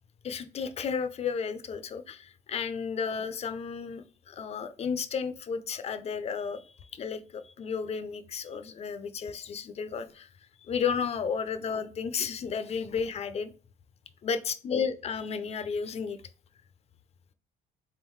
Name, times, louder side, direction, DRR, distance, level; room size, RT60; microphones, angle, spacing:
voice 1, 0.2-10.3 10.6-13.5 14.2-16.2, left 6 dB, 40° left, 11 dB, 0.5 m, -33 dB
3.8 x 3.7 x 3.0 m, 0.40 s
cardioid pair, 110°, 17 cm